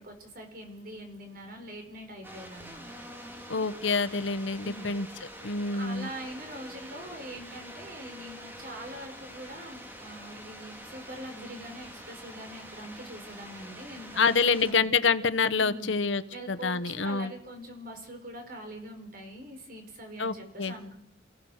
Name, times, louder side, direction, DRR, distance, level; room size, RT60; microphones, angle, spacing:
voice 1, 0.0-2.9 4.6-5.0 5.7-14.9 15.6-16.0 16.3-21.0, right 1 dB, 50° right, 4 dB, 5.0 m, -43 dB
sound 1, 2.2-14.7, equal, 10° right, 2.6 m, -46 dB
voice 2, 3.5-5.1 5.4-6.1 14.2-16.2 16.5-17.3 20.2-20.7, left 5 dB, 85° left, 12 dB, 1.0 m, -27 dB
29.0 x 16.5 x 6.5 m, 0.75 s
head